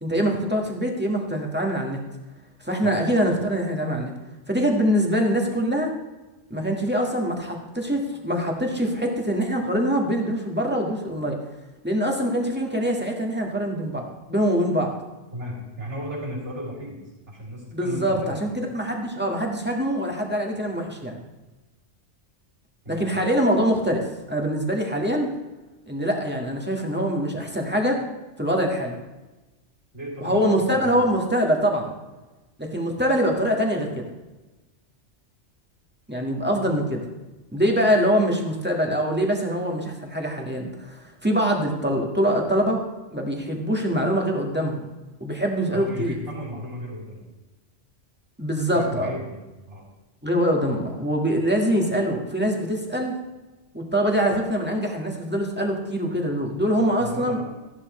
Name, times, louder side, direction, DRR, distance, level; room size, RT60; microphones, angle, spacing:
voice 1, 0.0-2.0 2.6-4.1 4.5-5.9 6.5-11.4 11.8-14.9 17.7-21.2 22.9-25.3 25.9-28.0 28.4-29.0 30.2-31.9 32.6-34.1 36.1-37.0 37.5-42.8 43.1-44.9 45.2-46.2 48.4-49.1 50.2-53.1 53.7-57.4, equal, 10° right, 0 dB, 1.6 m, -24 dB
voice 2, 15.3-18.4 22.8-23.1 29.9-30.4 30.7-31.1 45.7-47.2 48.7-49.9 57.0-57.4, equal, 80° right, -5 dB, 4.0 m, -35 dB
15.0 x 11.0 x 3.2 m, 1.1 s
omnidirectional pair, 1.2 m